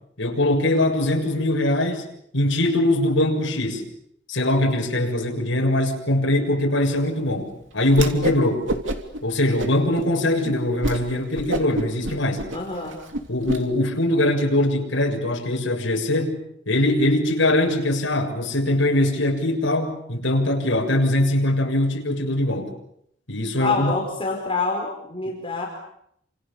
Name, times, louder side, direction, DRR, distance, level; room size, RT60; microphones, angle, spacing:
voice 1, 0.2-2.1 2.3-3.8 4.3-8.7 9.2-12.4 13.3-16.4 16.7-22.7 23.3-23.9, left 1 dB, 70° left, 1 dB, 7.1 m, -22 dB
Whoosh swoosh swish, 7.9-8.4 8.7-9.2 9.6-10.1 10.4-10.5 10.8-11.0 11.3-13.6, right 1 dB, 75° right, 3.1 m, -27 dB
voice 2, 12.5-13.0 23.6-25.7, left 4 dB, 30° left, 1 dB, 5.0 m, -26 dB
29.5 x 27.5 x 7.1 m, 0.72 s
head